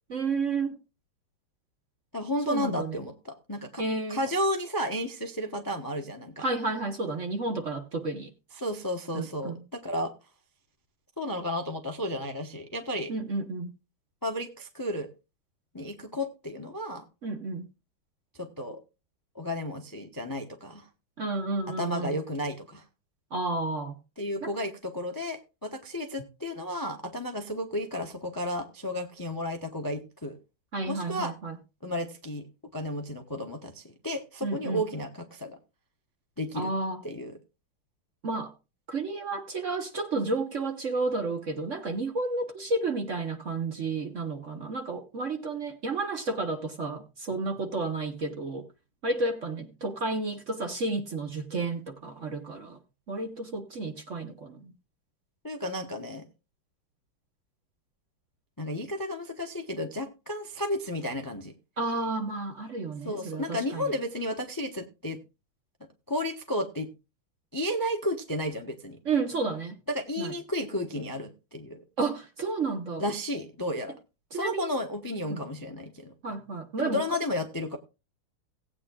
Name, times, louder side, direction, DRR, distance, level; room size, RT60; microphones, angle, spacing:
voice 1, 0.1-0.8 2.5-3.0 3.8-4.2 6.4-8.3 9.1-9.6 13.1-13.7 17.2-17.7 21.2-22.2 23.3-24.0 24.4-24.5 30.7-31.6 34.4-34.8 36.5-37.0 38.2-38.5 38.9-48.7 49.0-52.8 53.1-54.7 61.8-63.9 69.0-69.8 70.2-70.3 72.0-73.0 74.3-74.7 75.3-75.4 76.2-77.0, right 3 dB, 45° right, 1.2 m, -31 dB
voice 2, 2.1-3.8 4.1-6.4 8.6-10.1 11.2-13.1 14.2-15.1 15.7-17.0 18.4-18.8 19.3-20.9 21.7-22.8 24.2-30.4 30.9-31.3 31.8-32.5 32.7-35.6 36.4-36.7 37.0-37.4 55.4-56.3 58.6-61.5 63.0-65.2 66.1-66.9 67.5-69.0 69.9-71.8 73.0-73.9 74.3-76.1 76.8-77.8, left 1 dB, 15° left, 0.7 m, -33 dB
17.5 x 8.7 x 2.3 m
omnidirectional pair, 2.3 m